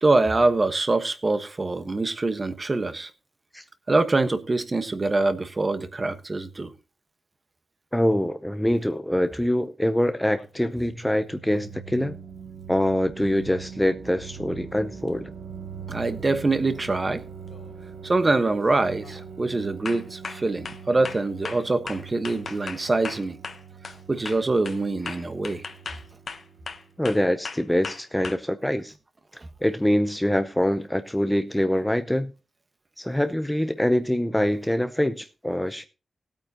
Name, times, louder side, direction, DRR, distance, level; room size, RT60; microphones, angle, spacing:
voice 1, 0.0-3.1 3.9-6.7 15.9-17.2 18.0-23.4 24.1-25.6, right 2 dB, 25° right, 1.2 m, -24 dB
voice 2, 7.9-12.2 12.7-15.3 27.0-28.9 29.6-32.3 33.0-35.8, left 1 dB, 5° left, 0.6 m, -24 dB
sound 1, 10.1-10.9 15.1-15.2 16.7-17.0 17.4-17.8 18.2-18.6 19.0-19.2 19.9-24.0 24.3-28.4, left 5 dB, 55° left, 1.1 m, -38 dB
sound 2, 10.4-27.1, right 6 dB, 75° right, 1.1 m, -42 dB
19.0 x 8.9 x 2.8 m
wide cardioid pair, 120°, 0 cm